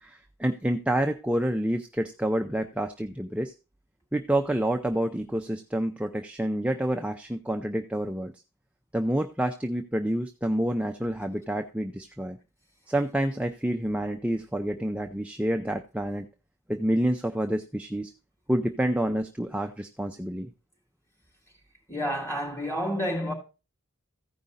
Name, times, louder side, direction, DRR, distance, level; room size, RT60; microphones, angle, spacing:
voice 1, 0.0-3.5 4.1-8.3 8.9-12.4 12.9-16.3 16.7-18.1 18.5-20.5, right 1 dB, 5° right, 0.5 m, -28 dB
voice 2, 21.9-23.3, equal, 10° left, 3.6 m, -29 dB
15.0 x 5.2 x 4.1 m
head